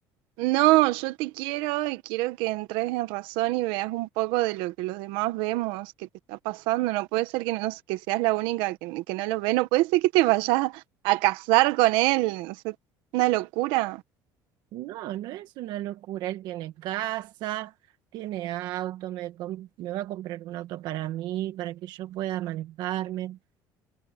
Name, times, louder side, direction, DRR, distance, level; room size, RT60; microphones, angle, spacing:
voice 1, 0.4-12.7 13.1-14.0, right 19 dB, 90° right, 1.2 m, -25 dB
voice 2, 14.7-17.7 18.1-23.4, right 14 dB, 60° right, 1.5 m, -33 dB
cardioid pair, 155°, 8 cm